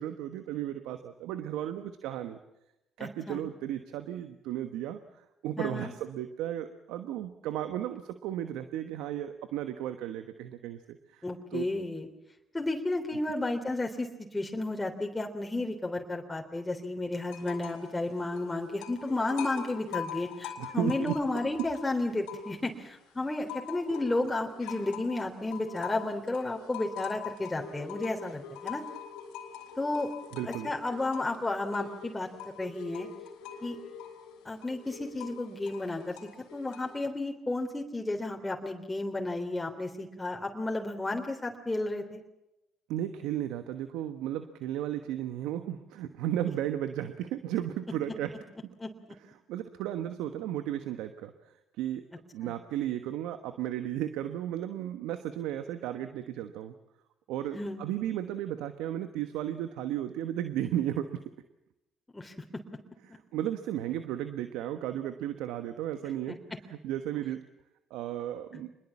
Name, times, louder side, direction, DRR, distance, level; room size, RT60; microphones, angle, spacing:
voice 1, 0.0-2.4 3.0-5.0 5.4-11.2 11.5-11.6 20.6-21.1 30.3-30.7 42.9-48.3 49.5-51.3 51.8-52.0 52.3-56.7 57.3-61.2 63.3-66.4 66.8-67.4 67.9-68.7, right 11 dB, 75° right, 9 dB, 1.2 m, -34 dB
voice 2, 3.0-3.4 5.6-5.9 11.2-12.1 12.5-28.8 29.8-30.1 30.5-32.3 32.6-33.1 33.6-33.8 34.5-42.2 48.8-48.9 52.4-52.5 57.5-57.8 62.1-62.3 66.3-66.4, left 2 dB, 20° left, 2 dB, 3.4 m, -32 dB
sound 1, 17.3-17.9 18.2-22.8 23.2-37.1, left 8 dB, 80° left, 3.3 m, -43 dB
26.0 x 21.5 x 7.3 m, 0.92 s
hypercardioid pair, 50°, 0 cm